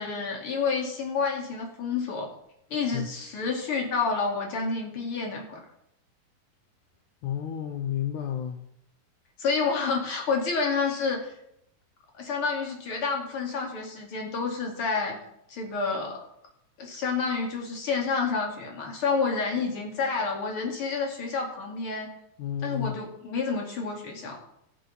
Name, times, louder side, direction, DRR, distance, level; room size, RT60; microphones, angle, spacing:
voice 1, 0.0-2.3 2.7-5.6 9.4-11.3 12.2-15.2 15.5-16.2 16.8-22.1 22.6-24.4, left 4 dB, 40° left, 2.9 m, -29 dB
voice 2, 7.2-8.6 22.4-23.0, left 9 dB, 70° left, 1.9 m, -31 dB
18.0 x 6.9 x 5.9 m
omnidirectional pair, 4.3 m